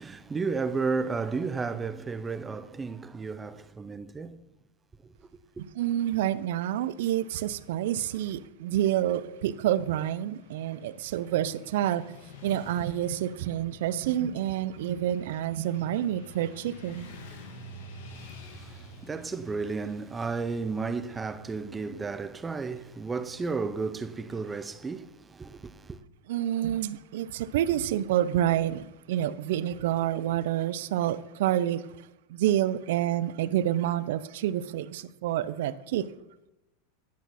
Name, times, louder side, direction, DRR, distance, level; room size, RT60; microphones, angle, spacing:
voice 1, 0.0-4.4 18.1-26.0, right 4 dB, 15° right, 0.4 m, -33 dB
voice 2, 5.8-12.0 12.4-17.1 26.3-31.9 32.3-36.1, right 12 dB, 70° right, 0.4 m, -28 dB
Motorcycle / Traffic noise roadway noise, 10.3-24.5, left 1 dB, 75° left, 2.1 m, -49 dB
10.5 x 6.1 x 4.1 m
supercardioid pair, 150°, 0 cm